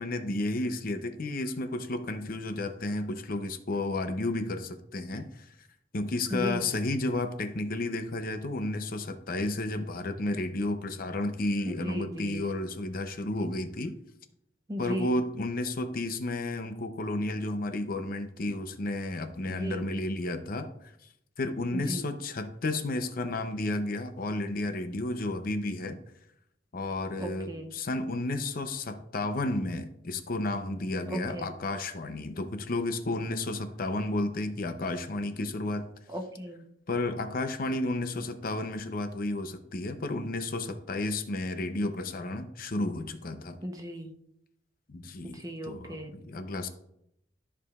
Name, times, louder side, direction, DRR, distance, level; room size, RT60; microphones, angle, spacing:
voice 1, 0.0-5.5 5.9-13.9 14.8-20.9 21.4-26.0 26.7-35.9 36.9-43.6 44.9-46.7, left 2 dB, 50° left, 8 dB, 0.7 m, -32 dB
voice 2, 6.3-6.7 11.7-12.4 14.7-15.2 19.5-19.8 21.7-22.1 27.2-27.7 31.1-31.5 36.1-36.6 43.6-44.1 45.2-46.1, equal, 20° right, 4 dB, 0.8 m, -36 dB
13.5 x 4.9 x 2.4 m, 0.77 s
head